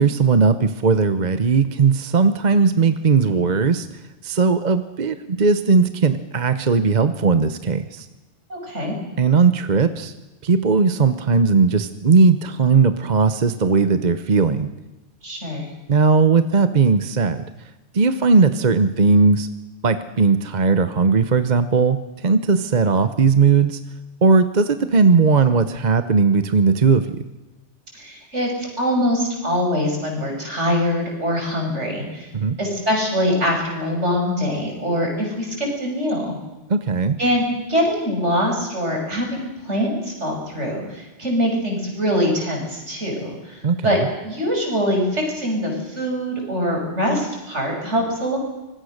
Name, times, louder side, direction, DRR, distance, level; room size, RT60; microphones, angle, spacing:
voice 1, 0.0-3.9 4.2-8.1 9.2-10.1 10.4-14.7 15.9-17.5 17.9-19.5 19.8-23.8 24.2-27.1 32.3-32.6 36.7-37.2 43.6-44.1, right 4 dB, 40° right, 11 dB, 1.0 m, -17 dB
voice 2, 8.5-9.0 15.2-15.7 27.9-32.3 32.6-36.4 37.2-44.0 44.2-48.4, equal, 70° right, 0 dB, 6.7 m, -23 dB
25.5 x 20.5 x 6.5 m, 1.1 s
omnidirectional pair, 1.2 m